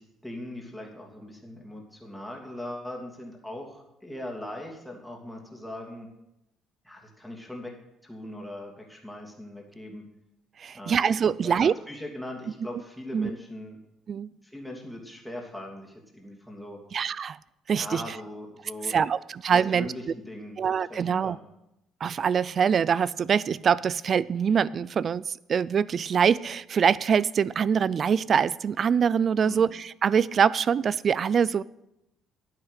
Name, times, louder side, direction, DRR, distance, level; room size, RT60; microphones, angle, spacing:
voice 1, 0.0-6.1 6.8-7.7 8.0-10.0 10.7-11.2 11.4-13.8 14.4-16.8 17.7-19.0 19.5-20.6 20.9-21.4 29.4-29.7, left 1 dB, ahead, -1 dB, 2.9 m, -40 dB
voice 2, 10.6-11.7 13.1-13.3 14.1-14.3 16.9-17.4 17.7-18.2 18.9-19.9 20.6-21.4 22.0-31.6, right 7 dB, 45° right, 20 dB, 0.4 m, -24 dB
11.5 x 9.3 x 6.4 m, 0.88 s
cardioid pair, 105°, 0 cm